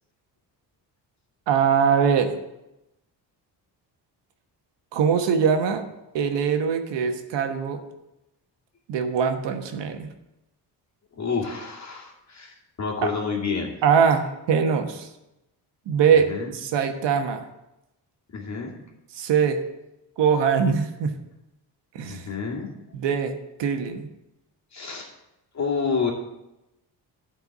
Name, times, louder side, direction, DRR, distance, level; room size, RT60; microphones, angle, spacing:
voice 1, 1.5-2.3 4.9-5.8 6.1-7.8 8.9-10.1 13.0-13.1 13.8-15.1 15.9-17.4 19.2-19.6 20.2-21.2 21.9-22.3 22.9-24.1, right 7 dB, 85° right, 6 dB, 1.3 m, -22 dB
voice 2, 11.2-13.8 16.3-16.5 18.3-18.7 22.1-22.7 24.7-25.1 25.5-26.1, left 5 dB, 40° left, -1 dB, 2.5 m, -29 dB
12.0 x 4.7 x 7.2 m, 0.93 s
cardioid pair, 125°, 41 cm